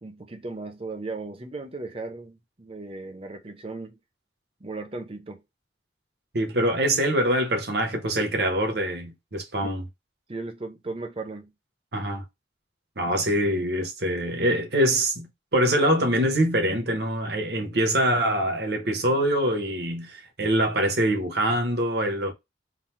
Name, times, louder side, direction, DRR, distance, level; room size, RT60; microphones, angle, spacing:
voice 1, 0.0-4.0 4.6-5.4 9.6-9.7 10.3-11.5, right 3 dB, 30° right, 0.8 m, -36 dB
voice 2, 6.3-9.8 11.9-12.2 13.0-22.3, right 1 dB, 65° right, 1.1 m, -24 dB
4.0 x 2.3 x 4.4 m
head